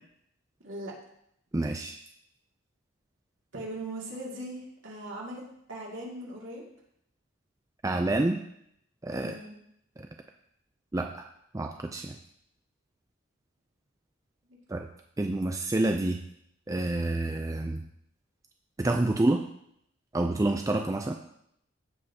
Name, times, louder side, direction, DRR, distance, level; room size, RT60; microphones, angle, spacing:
voice 1, 1.5-2.0 7.8-8.4 9.0-9.4 10.0-10.1 10.9-11.3 11.5-12.2 14.7-14.9 15.2-16.2 16.7-17.8 18.8-19.4 20.1-21.1, right 2 dB, 15° right, 4 dB, 0.4 m, -28 dB
voice 2, 3.5-5.4 5.7-6.6 9.2-9.5 14.4-14.6, right 1 dB, 65° right, -3 dB, 2.3 m, -39 dB
15.5 x 5.4 x 2.8 m, 0.73 s
head